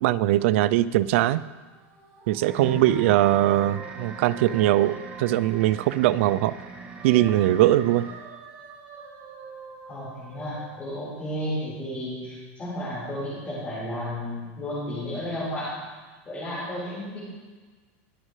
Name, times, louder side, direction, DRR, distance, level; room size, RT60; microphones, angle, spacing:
voice 1, 0.0-1.4 2.3-6.5 7.0-8.1, right 14 dB, 65° right, 17 dB, 0.4 m, -21 dB
sound 1, 1.5-6.3 6.6-11.4, right 5 dB, 40° right, 2.5 m, -45 dB
sound 2, 2.5-8.2, right 3 dB, 15° right, 1.2 m, -42 dB
voice 2, 9.9-15.7 16.3-17.2, equal, 20° left, -10 dB, 4.2 m, -33 dB
21.5 x 7.5 x 3.2 m, 1.4 s
supercardioid pair, 150°, 7 cm